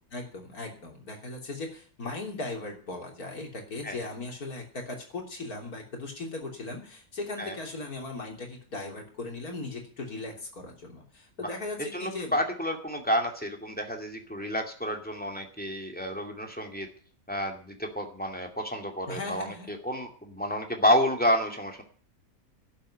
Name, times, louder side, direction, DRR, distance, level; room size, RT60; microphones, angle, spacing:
voice 1, 0.1-12.4 19.1-19.7, left 2 dB, 75° left, 2 dB, 3.7 m, -38 dB
voice 2, 11.9-16.9 17.3-21.8, equal, 5° left, 3 dB, 2.4 m, -29 dB
11.5 x 7.6 x 10.0 m, 0.44 s
omnidirectional pair, 1.6 m